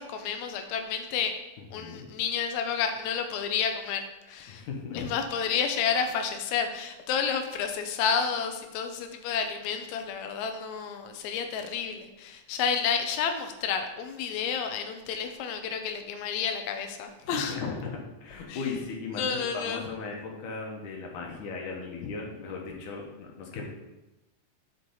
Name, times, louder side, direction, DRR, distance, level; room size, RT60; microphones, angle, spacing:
voice 1, 0.0-1.3 1.7-4.7 4.9-17.6 18.5-18.7 19.2-19.8, left 7 dB, 85° left, 6 dB, 1.6 m, -30 dB
voice 2, 1.8-2.1 4.5-5.1 17.2-23.6, left 4 dB, 70° left, 0 dB, 2.3 m, -37 dB
9.4 x 4.5 x 4.1 m, 1.0 s
omnidirectional pair, 4.0 m